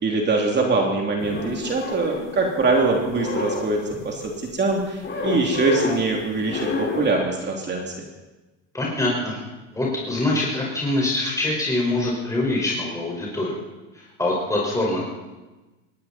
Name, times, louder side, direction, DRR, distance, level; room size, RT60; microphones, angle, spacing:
voice 1, 0.0-6.7 7.0-8.0, right 3 dB, 25° right, 0 dB, 3.1 m, -23 dB
sound 1, 1.2-2.7 3.0-4.3 5.0-6.1 6.4-7.1, left 3 dB, 30° left, 6.0 m, -29 dB
voice 2, 8.7-9.4 9.7-13.6 13.9-15.1, left 2 dB, 10° left, -4 dB, 5.4 m, -24 dB
19.5 x 17.0 x 4.4 m, 1.1 s
supercardioid pair, 105°, 39 cm